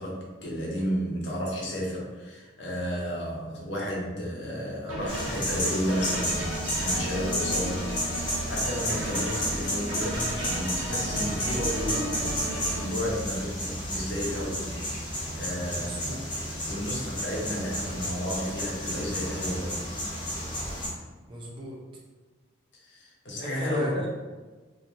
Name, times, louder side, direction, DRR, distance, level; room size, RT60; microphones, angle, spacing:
voice 1, 0.0-7.9 8.4-14.7 15.3-16.3 16.7-19.8 22.8-24.0, equal, 65° left, -3 dB, 0.7 m, -32 dB
sound 1, 4.9-12.9, right 1 dB, 85° right, 0.6 m, -35 dB
sound 2, 5.1-20.9, equal, 25° left, 0.6 m, -32 dB
voice 2, 15.7-16.2 21.3-21.8 23.4-24.1, right 1 dB, 25° right, -3 dB, 0.4 m, -36 dB
2.5 x 2.2 x 2.8 m, 1.3 s
head